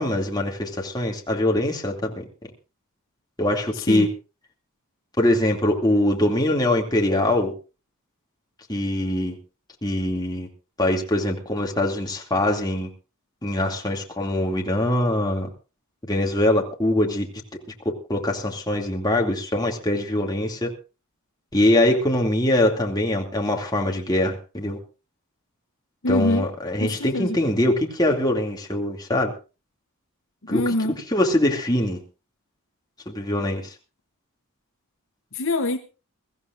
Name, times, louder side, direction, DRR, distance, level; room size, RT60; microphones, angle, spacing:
voice 1, 0.0-2.2 3.4-4.1 5.2-7.5 8.7-9.4 9.8-10.5 10.8-12.9 13.4-15.5 16.1-17.3 18.1-20.7 21.5-24.8 26.1-29.3 30.5-30.6 31.1-32.0 33.1-33.7, left 1 dB, 20° left, 2.6 m, -23 dB
voice 2, 3.7-4.1 26.0-26.5 26.8-27.4 30.4-31.0 35.3-35.8, left 2 dB, 60° left, 1.1 m, -24 dB
23.0 x 15.0 x 2.6 m
head